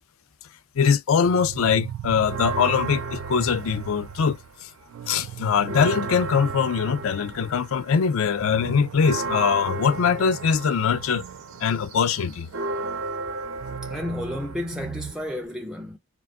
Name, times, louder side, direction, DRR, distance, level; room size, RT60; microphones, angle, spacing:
voice 1, 0.8-4.7 5.1-11.2 11.6-12.5, left 6 dB, 70° left, 0.4 m, -22 dB
sound 1, 1.2-7.7 8.0-8.1 8.4-13.0 13.5-15.1, right 9 dB, 90° right, 0.3 m, -38 dB
Church bell, 2.2-4.6 5.0-5.1 5.4-15.5, right 3 dB, 65° right, 0.7 m, -35 dB
voice 2, 13.8-16.0, left 1 dB, 5° right, 0.4 m, -32 dB
3.7 x 2.5 x 3.5 m
head